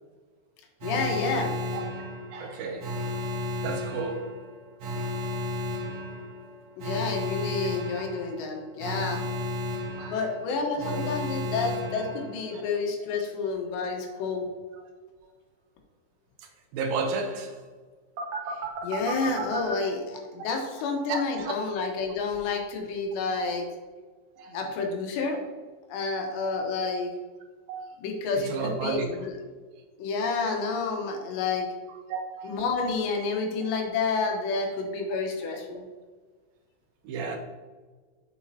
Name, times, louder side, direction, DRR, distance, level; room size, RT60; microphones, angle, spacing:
voice 1, 0.8-1.5 6.8-9.2 10.1-14.5 18.8-23.7 24.5-25.4 25.9-27.1 28.0-29.3 30.0-31.7 32.4-35.8, left 4 dB, 90° left, 3.3 m, -29 dB
Alarm, 0.8-12.7 18.2-19.7, left 1 dB, 65° right, 1.9 m, -33 dB
voice 2, 2.3-3.0 3.6-4.6 8.0-8.1 10.0-10.3 10.9-11.2 12.0-12.2 12.5-12.6 14.7-14.9 15.2-15.3 16.4-17.7 20.7-20.8 21.1-21.5 23.3-23.5 24.4-24.6 27.7-28.0 28.4-29.3 32.1-32.7 37.0-37.4, right 4 dB, 80° right, 2.1 m, -34 dB
7.7 x 7.3 x 2.8 m
omnidirectional pair, 4.9 m